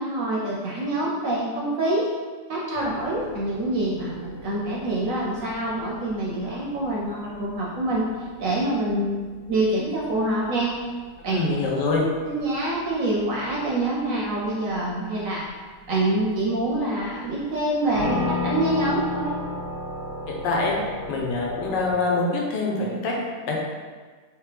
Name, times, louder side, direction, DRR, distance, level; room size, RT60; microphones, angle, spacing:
voice 1, 0.0-2.1 2.5-8.1 8.4-10.8 11.2-11.4 12.2-15.5 15.9-19.4, right 1 dB, 65° right, -4 dB, 0.8 m, -26 dB
sound 1, 2.7-21.9, left 2 dB, 55° left, 1.4 m, -36 dB
voice 2, 11.3-12.1 20.3-20.8 21.1-23.2 23.4-23.5, left 3 dB, 85° left, -1 dB, 1.4 m, -25 dB
3.5 x 3.4 x 3.2 m, 1.5 s
omnidirectional pair, 1.9 m